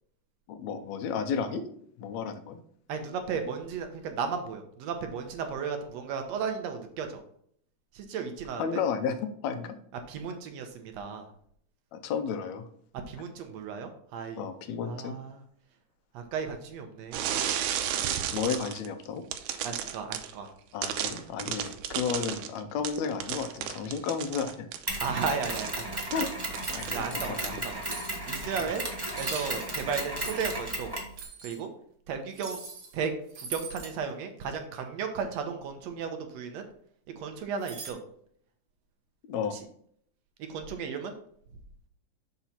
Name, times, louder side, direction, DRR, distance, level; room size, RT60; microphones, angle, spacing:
voice 1, 0.5-1.6 2.0-2.6 8.6-9.2 9.4-9.8 11.9-12.7 14.4-15.2 18.3-19.2 20.7-24.7 26.1-26.3 26.7-27.6 28.6-28.7 39.2-39.6, left 6 dB, 75° left, 9 dB, 1.9 m, -32 dB
voice 2, 2.9-7.2 8.0-8.8 10.1-11.2 13.1-14.4 14.9-15.4 16.1-17.3 19.6-20.5 25.0-26.0 26.9-27.8 28.3-28.8 29.2-30.9 31.4-31.7 32.1-32.6 32.9-33.1 33.4-36.7 37.2-38.0 39.5-39.6 40.5-41.1, right 6 dB, 70° right, 6 dB, 1.8 m, -34 dB
sound 1, 17.1-18.9 19.3-20.3 20.8-24.9 25.4-27.2 27.4-27.7, right 10 dB, 90° right, 2.1 m, -33 dB
Mechanisms, 24.9-31.2, right 1 dB, 30° right, 0.4 m, -34 dB
sound 2, 26.5-27.3 27.8-28.1 29.1-29.5 30.2-30.5 31.2-31.6 32.3-33.0 33.3-33.9 37.6-37.9, right 5 dB, 50° right, 2.3 m, -41 dB
7.1 x 4.0 x 5.8 m, 0.64 s
omnidirectional pair, 3.5 m